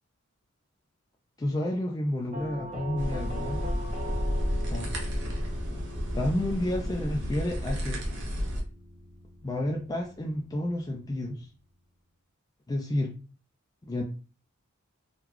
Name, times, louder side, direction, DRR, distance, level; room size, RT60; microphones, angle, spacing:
voice 1, 1.4-3.6 4.7-4.9 6.1-8.0 9.4-11.5 12.7-13.2 13.9-14.0, left 1 dB, 20° left, 0 dB, 0.4 m, -30 dB
Doorbell, 2.3-11.2, equal, 35° right, 0.9 m, -42 dB
sound 1, 3.0-8.6, equal, 60° right, 1.0 m, -31 dB
3.8 x 2.2 x 2.9 m, 0.36 s
head